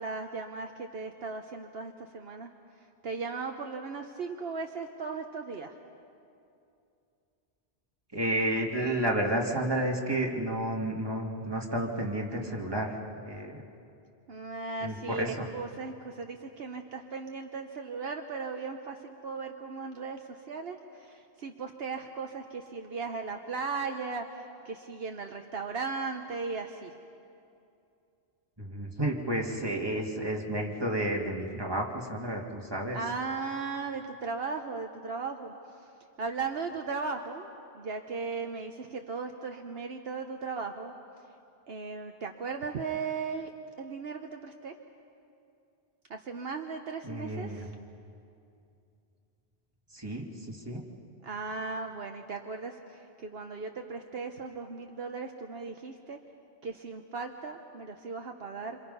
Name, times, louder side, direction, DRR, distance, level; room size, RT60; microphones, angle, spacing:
voice 1, 0.0-2.5 3.0-5.8 14.3-26.9 32.9-35.9 36.2-37.5 37.7-40.9 41.7-43.5 43.8-44.7 46.1-47.7 51.2-56.2 56.6-58.8, right 4 dB, 65° right, 4 dB, 1.2 m, -37 dB
voice 2, 8.1-13.0 13.3-13.6 14.8-15.4 28.6-33.0 47.0-47.6 49.9-50.8, right 1 dB, 20° right, -1 dB, 2.4 m, -31 dB
27.5 x 27.0 x 5.6 m, 2.6 s
omnidirectional pair, 1.1 m